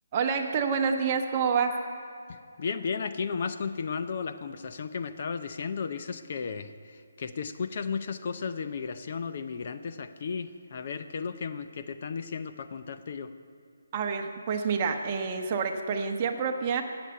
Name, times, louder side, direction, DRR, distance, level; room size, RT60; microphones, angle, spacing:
voice 1, 0.1-1.8 13.9-16.8, right 6 dB, 25° right, 4 dB, 1.1 m, -28 dB
voice 2, 2.3-13.3, left 5 dB, 40° left, 9 dB, 0.6 m, -34 dB
15.0 x 7.9 x 9.7 m, 2.5 s
hypercardioid pair, 170°, 0 cm